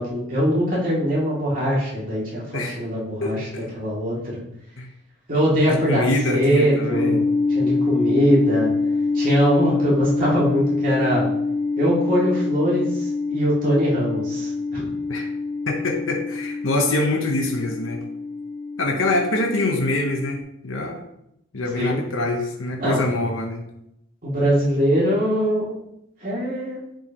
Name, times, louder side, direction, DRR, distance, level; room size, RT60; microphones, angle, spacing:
voice 1, 0.0-3.5 3.7-4.4 5.3-7.2 7.5-8.7 9.1-11.3 11.8-14.9 21.7-22.0 22.8-23.0 24.2-25.8 26.2-26.8, equal, 45° right, -6 dB, 2.6 m, -22 dB
voice 2, 3.2-3.7 4.8-4.9 5.7-7.2 15.1-15.3 15.7-18.0 18.8-20.4 20.6-21.0 21.5-23.6, left 2 dB, 85° left, 2 dB, 1.0 m, -24 dB
sound 1, 6.9-20.4, left 3 dB, 65° left, 2.1 m, -25 dB
10.5 x 4.7 x 3.0 m, 0.79 s
head